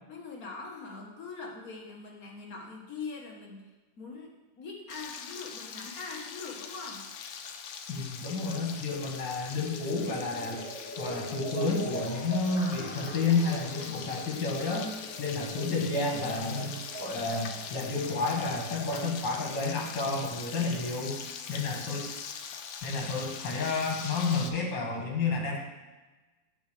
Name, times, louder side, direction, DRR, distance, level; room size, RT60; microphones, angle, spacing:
voice 1, 0.1-3.6 4.0-7.1, left 4 dB, 50° left, -1 dB, 1.9 m, -42 dB
Frying (food), 4.9-24.5, left 7 dB, 85° left, 1.5 m, -42 dB
voice 2, 7.9-10.6 11.0-14.9 15.2-21.2 21.5-22.1 22.8-25.6, left 3 dB, 70° left, 0 dB, 2.5 m, -30 dB
sound 1, 9.6-18.3, right 1 dB, 5° left, 1.0 m, -43 dB
9.5 x 4.7 x 6.7 m, 1.2 s
omnidirectional pair, 2.0 m